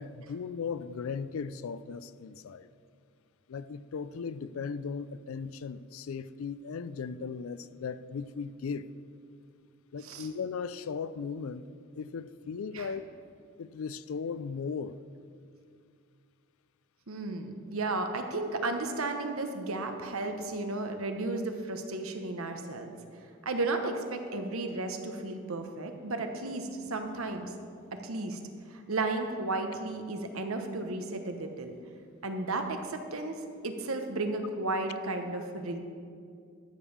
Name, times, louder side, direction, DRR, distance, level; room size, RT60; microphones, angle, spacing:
voice 1, 0.0-2.7 3.5-8.9 9.9-11.7 11.9-13.0 13.6-15.0, left 5 dB, 70° left, 16 dB, 0.4 m, -37 dB
voice 2, 17.1-22.9 23.4-27.5 27.9-28.4 28.7-31.7 32.2-35.8, right 2 dB, 75° right, 5 dB, 1.1 m, -34 dB
13.0 x 5.4 x 7.1 m, 2.3 s
head